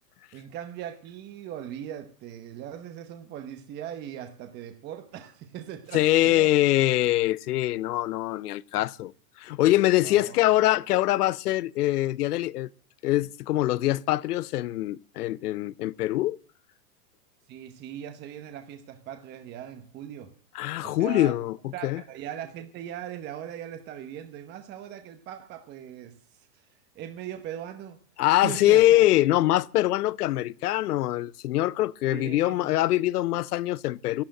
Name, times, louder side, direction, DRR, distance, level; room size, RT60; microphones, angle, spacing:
voice 1, 0.3-6.5 10.0-10.4 17.5-20.3 20.8-21.4 21.7-26.2 26.5-26.6 26.9-28.0 28.3-29.0 32.1-32.7, right 10 dB, 20° right, 1.0 m, -39 dB
voice 2, 5.9-9.1 9.4-12.7 13.0-16.4 20.5-21.6 21.8-22.0 28.2-34.2, left 15 dB, 70° left, 0.7 m, -23 dB
11.5 x 11.5 x 7.5 m
supercardioid pair, 150°, 47 cm